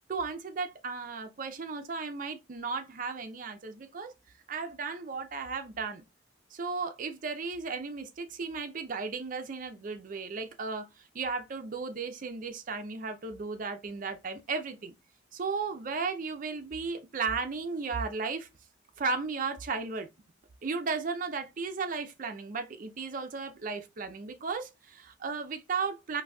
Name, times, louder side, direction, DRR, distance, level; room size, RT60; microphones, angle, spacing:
voice 1, 0.1-4.1 4.5-6.0 6.5-14.9 15.3-18.5 19.0-20.1 20.6-26.2, right 4 dB, 45° right, 0.5 m, -35 dB
3.9 x 2.6 x 2.2 m
head